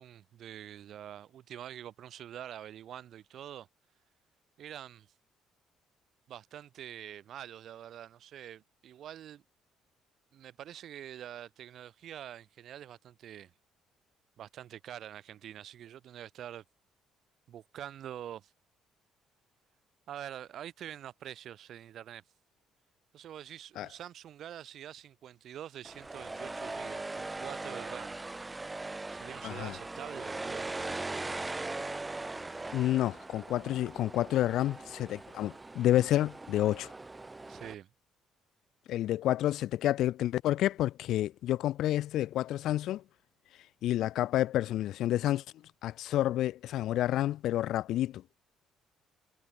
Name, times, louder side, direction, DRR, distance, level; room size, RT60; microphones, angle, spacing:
voice 1, 0.0-3.7 4.6-5.1 6.3-9.4 10.3-13.5 14.4-16.6 17.5-18.5 20.1-22.2 23.1-28.2 29.1-30.7 37.5-37.9, right 10 dB, 65° right, 6.1 m, -45 dB
sound 1, 25.8-37.7, right 2 dB, 15° right, 0.8 m, -40 dB
voice 2, 29.4-29.7 32.7-36.9 38.9-43.0 43.8-45.4 45.8-48.2, left 13 dB, 75° left, 0.7 m, -29 dB
cardioid pair, 90°, 0 cm